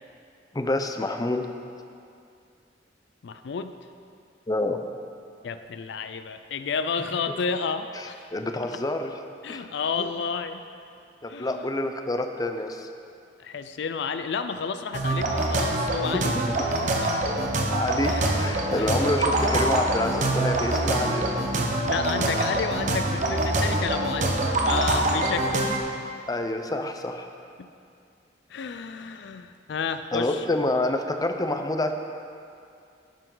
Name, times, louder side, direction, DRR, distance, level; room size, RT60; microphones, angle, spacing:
voice 1, 0.5-1.5 4.5-4.8 7.9-9.1 9.5-9.7 10.0-10.1 11.2-12.9 17.3-17.5 17.7-21.3 26.3-27.3 30.1-31.9, left 2 dB, 20° left, 6 dB, 0.5 m, -27 dB
voice 2, 3.2-3.7 5.4-8.3 8.7-8.8 9.4-10.6 11.3-11.6 13.4-16.3 17.0-17.5 18.1-18.3 18.8-18.9 21.8-24.4 24.7-25.7 27.6-27.7 28.5-30.4, left 5 dB, 70° left, 10 dB, 0.4 m, -31 dB
sound 1, 14.9-25.8, right 2 dB, 45° right, 1.0 m, -25 dB
11.5 x 9.1 x 3.8 m, 2.4 s
head